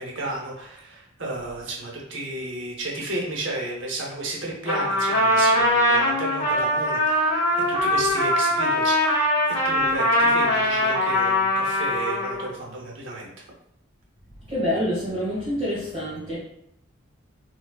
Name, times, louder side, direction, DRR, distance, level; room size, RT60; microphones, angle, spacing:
voice 1, 0.0-7.4 7.8-13.3, right 2 dB, 65° right, -1 dB, 0.8 m, -33 dB
Trumpet, 4.6-12.5, left 1 dB, 35° left, 1.1 m, -21 dB
voice 2, 14.5-16.4, equal, 25° right, -9 dB, 1.2 m, -26 dB
4.4 x 2.2 x 2.3 m, 0.76 s
head